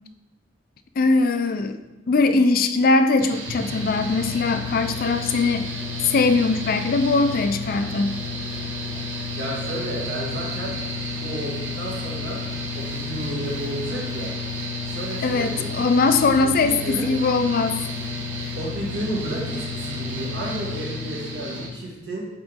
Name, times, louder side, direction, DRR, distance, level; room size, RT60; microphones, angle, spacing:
voice 1, 1.0-1.8 2.1-5.7 6.0-8.2 15.2-17.8, left 3 dB, 50° left, 9 dB, 0.4 m, -21 dB
Mechanical fan, 3.2-21.7, left 2 dB, 80° right, 1.2 m, -31 dB
voice 2, 9.4-10.7 11.2-12.4 12.7-14.3 14.8-15.7 16.4-17.1 18.5-22.3, right 1 dB, 60° right, -3 dB, 1.8 m, -32 dB
7.9 x 3.9 x 3.5 m, 1.0 s
head